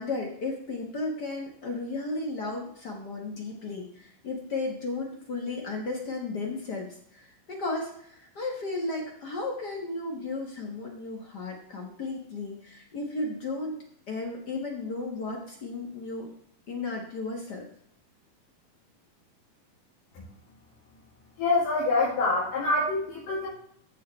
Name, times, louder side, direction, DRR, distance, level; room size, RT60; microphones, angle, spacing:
voice 1, 0.0-16.3 16.7-17.7, left 3 dB, 55° left, 0 dB, 1.1 m, -34 dB
voice 2, 21.4-23.5, left 2 dB, 75° left, -7 dB, 3.9 m, -25 dB
14.0 x 6.6 x 3.2 m, 0.67 s
omnidirectional pair, 3.9 m